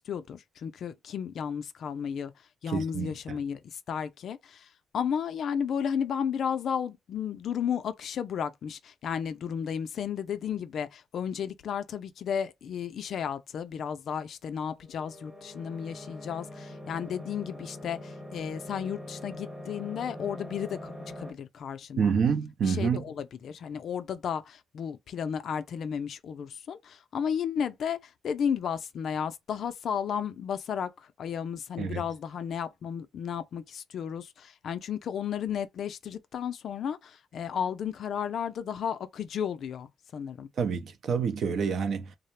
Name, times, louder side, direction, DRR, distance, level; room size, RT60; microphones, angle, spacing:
voice 1, 0.0-2.3 2.6-4.7 4.9-22.1 22.6-28.0 28.2-39.9 40.1-40.5, left 8 dB, 65° left, 0.3 m, -33 dB
voice 2, 2.7-3.4 22.0-23.0 31.8-32.0 40.6-42.2, right 6 dB, 60° right, 0.4 m, -28 dB
sound 1, 14.7-21.3, left 1 dB, 5° right, 0.8 m, -43 dB
2.3 x 2.0 x 3.0 m
cardioid pair, 90°, 0 cm